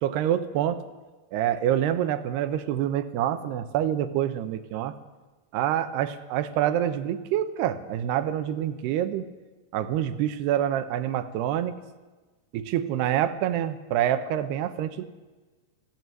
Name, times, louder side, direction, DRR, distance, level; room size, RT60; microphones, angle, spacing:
voice 1, 0.0-0.8 1.3-5.0 5.5-9.3 9.7-11.8 12.5-15.1, right 11 dB, 75° right, 11 dB, 3.0 m, -26 dB
19.0 x 16.0 x 9.3 m, 1.3 s
omnidirectional pair, 5.0 m